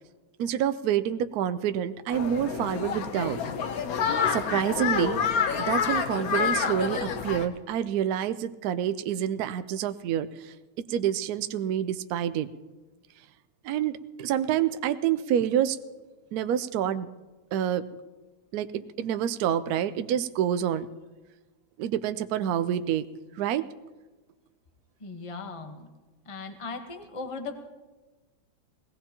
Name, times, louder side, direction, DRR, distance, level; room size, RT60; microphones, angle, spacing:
voice 1, 0.4-3.4 4.2-10.5 10.9-12.5 13.6-15.8 16.3-17.1 17.5-17.8 18.5-20.9 21.8-23.0 23.3-23.7, right 10 dB, 85° right, 12 dB, 0.8 m, -28 dB
sound 1, 2.1-7.5, left 6 dB, 60° left, 1.0 m, -28 dB
voice 2, 25.0-25.9 26.2-27.6, left 4 dB, 25° left, 5 dB, 0.7 m, -38 dB
21.0 x 17.5 x 2.9 m, 1.2 s
omnidirectional pair, 2.3 m